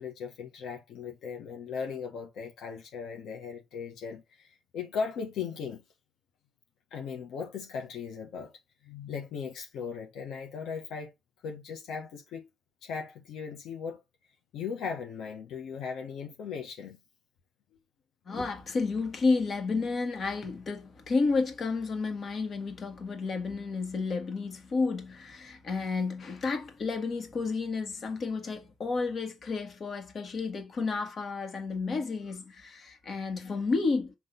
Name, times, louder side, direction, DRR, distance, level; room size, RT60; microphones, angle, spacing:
voice 1, 0.0-5.8 6.9-8.5 8.8-11.1 11.4-12.5 12.8-14.0 14.5-17.0, left 6 dB, 80° left, 1.3 m, -38 dB
voice 2, 18.3-34.1, left 4 dB, 50° left, 1.9 m, -31 dB
6.1 x 3.3 x 5.3 m
cardioid pair, 90°, 0 cm